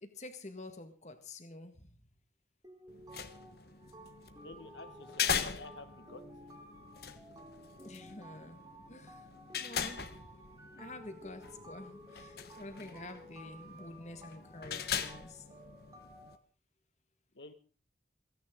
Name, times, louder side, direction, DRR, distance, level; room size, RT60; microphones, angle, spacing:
voice 1, 0.0-2.0 7.8-8.6 8.9-10.3 10.7-15.4, left 2 dB, 40° left, 1.7 m, -49 dB
sound 1, 2.6-16.4, right 1 dB, 20° right, 2.1 m, -54 dB
sound 2, 2.9-16.4, left 7 dB, 55° left, 1.2 m, -41 dB
voice 2, 4.4-6.2 17.3-17.5, left 3 dB, 80° left, 1.7 m, -50 dB
28.5 x 10.0 x 3.8 m
head